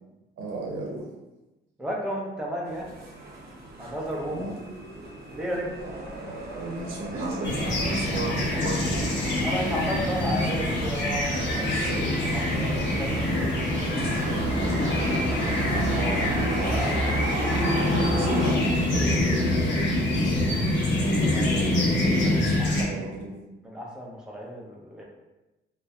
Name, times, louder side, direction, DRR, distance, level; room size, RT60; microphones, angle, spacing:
voice 1, 0.4-1.1 4.3-4.6 5.8-8.8 11.3-12.2 12.5-13.0 13.3-15.5 17.0-17.3 17.6-20.1 21.4-23.4, right 1 dB, 90° right, -2 dB, 0.6 m, -36 dB
voice 2, 1.8-2.9 3.8-4.4 5.3-5.7 8.3-8.6 9.1-11.2 11.6-13.4 15.7-17.1 17.4-17.6 20.5-21.6 22.2-22.9 23.7-25.0, equal, 5° right, -3 dB, 0.5 m, -34 dB
sound 1, 2.6-18.5, right 1 dB, 50° right, 0.6 m, -34 dB
sound 2, 7.4-22.8, left 1 dB, 65° left, 0.7 m, -25 dB
2.5 x 2.1 x 2.3 m, 1.0 s
cardioid pair, 90°, 20 cm